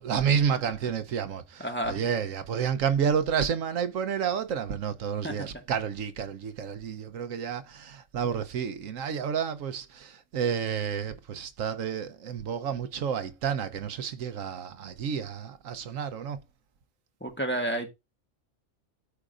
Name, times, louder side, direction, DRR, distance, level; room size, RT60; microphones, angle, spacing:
voice 1, 0.0-16.4, right 7 dB, 75° right, 1.2 m, -30 dB
voice 2, 1.6-2.0 5.2-5.6 17.2-17.9, right 1 dB, 10° left, 1.4 m, -31 dB
13.0 x 4.9 x 2.5 m
omnidirectional pair, 1.4 m